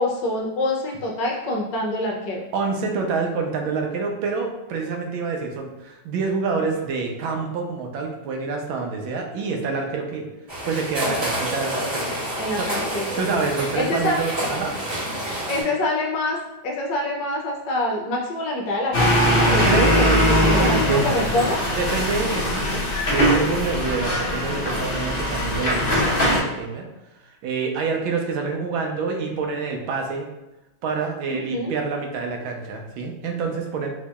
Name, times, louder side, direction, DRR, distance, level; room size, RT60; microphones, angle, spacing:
voice 1, 0.0-2.4 12.4-13.2 13.7-14.2 15.5-16.4 16.6-20.2 20.4-21.6 31.3-31.7, left 1 dB, 70° left, -1 dB, 1.2 m, -25 dB
voice 2, 2.5-10.3 10.6-12.1 12.5-12.7 13.2-14.7 19.6-21.0 21.7-26.9 27.4-30.3 30.8-33.9, right 4 dB, 85° right, 2 dB, 1.4 m, -27 dB
sound 1, 10.5-15.6, right 1 dB, 40° right, 1.9 m, -28 dB
sound 2, 18.9-26.4, equal, 50° left, 0.6 m, -21 dB
4.9 x 2.7 x 2.3 m, 1.0 s
omnidirectional pair, 2.2 m